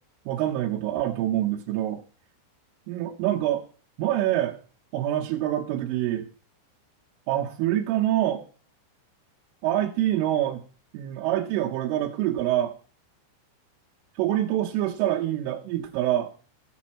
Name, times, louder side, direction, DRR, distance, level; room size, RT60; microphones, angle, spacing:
voice 1, 0.3-2.0 2.9-3.6 4.0-4.6 4.9-6.3 7.3-8.5 9.6-10.6 10.9-12.8 14.2-16.3, right 13 dB, 85° right, -1 dB, 3.5 m, -25 dB
15.5 x 7.1 x 4.2 m, 0.40 s
omnidirectional pair, 5.6 m